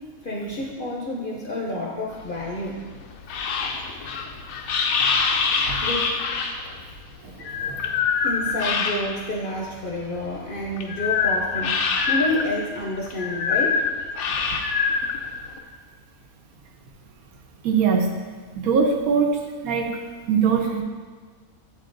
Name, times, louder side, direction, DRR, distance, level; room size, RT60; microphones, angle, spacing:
voice 1, 0.2-2.8 5.0-5.1 5.8-6.2 6.6-6.7 8.2-13.8, left 1 dB, 50° left, -2 dB, 0.7 m, -29 dB
sound 1, 2.1-9.4 9.8-15.6, left 5 dB, 80° left, 1.0 m, -25 dB
voice 2, 7.2-7.9 17.6-18.1 18.6-19.4 19.6-20.0 20.3-20.8, right 6 dB, 80° right, 2 dB, 1.2 m, -22 dB
7.8 x 3.8 x 3.8 m, 1.5 s
omnidirectional pair, 1.5 m